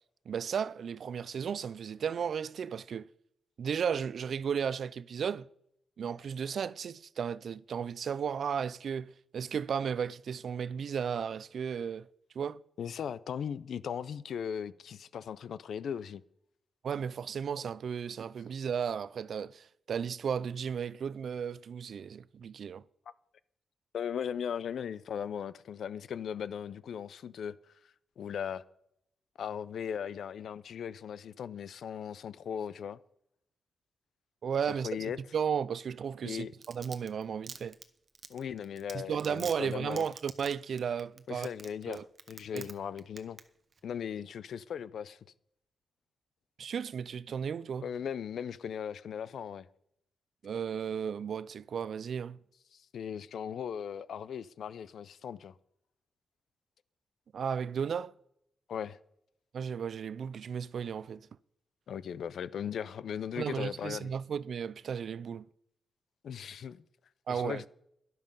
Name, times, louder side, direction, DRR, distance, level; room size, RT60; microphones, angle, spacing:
voice 1, 0.3-3.1 3.6-5.5 6.0-12.1 12.4-12.6 16.8-22.8 34.4-37.8 38.9-41.5 41.9-42.0 42.5-42.6 46.6-47.9 50.4-52.4 57.3-58.1 59.5-61.3 63.4-65.5 67.3-67.7, right 7 dB, 65° right, 0.4 m, -34 dB
voice 2, 12.8-16.2 23.9-27.6 28.2-28.6 29.4-33.0 34.8-35.2 36.2-36.5 38.3-40.1 41.3-43.4 43.8-45.2 47.8-49.6 52.7-55.5 58.7-59.0 61.9-64.1 66.2-66.8 67.3-67.7, left 8 dB, 75° left, 0.5 m, -38 dB
Domestic sounds home sounds, 36.4-42.7 43.0-43.4 43.7-43.8, right 5 dB, 40° right, 0.9 m, -45 dB
12.5 x 11.0 x 5.4 m
wide cardioid pair, 125°, 0 cm